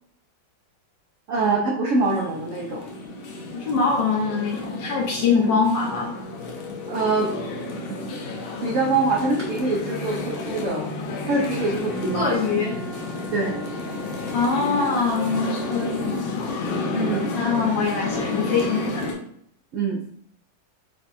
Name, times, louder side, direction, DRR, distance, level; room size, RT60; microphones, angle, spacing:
voice 1, 1.3-2.9 5.3-5.6 6.9-7.4 7.9-8.0 8.6-10.9 11.3-12.3 13.3-13.5 16.9-17.3 19.7-20.0, right 3 dB, 75° right, -1 dB, 0.7 m, -24 dB
sound 1, 2.0-19.1, left 2 dB, 90° left, 1.6 m, -31 dB
voice 2, 3.5-6.1 12.1-12.8 14.3-16.5 17.3-19.2, left 5 dB, 70° left, -2 dB, 1.8 m, -23 dB
Wind instrument woodwind instrument, 11.9-16.5, left 1 dB, 55° left, 1.4 m, -43 dB
4.8 x 2.3 x 4.1 m, 0.69 s
omnidirectional pair, 2.1 m